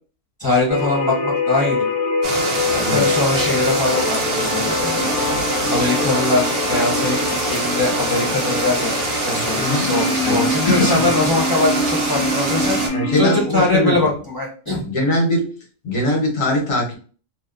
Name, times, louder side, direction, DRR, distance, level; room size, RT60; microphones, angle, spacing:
voice 1, 0.4-1.9 2.7-5.1 5.7-12.8 13.2-14.8, left 2 dB, 30° left, -4 dB, 0.4 m, -22 dB
sound 1, 0.7-13.4, left 3 dB, 70° left, 0.8 m, -24 dB
sound 2, 2.2-12.9, right 2 dB, 55° right, 0.9 m, -24 dB
voice 2, 9.3-9.9 10.2-11.1 12.9-13.9 14.8-15.5 15.8-17.0, left 1 dB, 85° left, 0 dB, 1.3 m, -21 dB
2.8 x 2.1 x 2.3 m, 0.41 s
omnidirectional pair, 1.3 m